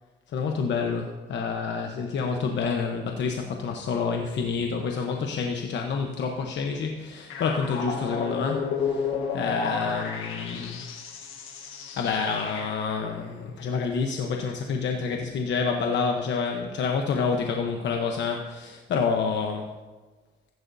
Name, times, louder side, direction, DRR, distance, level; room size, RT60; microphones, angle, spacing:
voice 1, 0.3-9.1 9.3-10.8 11.3-11.5 11.9-19.7, left 5 dB, 65° left, 2 dB, 1.0 m, -28 dB
sound 1, 7.3-13.0, left 5 dB, 85° left, 1.5 m, -32 dB
15.0 x 11.0 x 2.7 m, 1.3 s
cardioid pair, 90°, 20 cm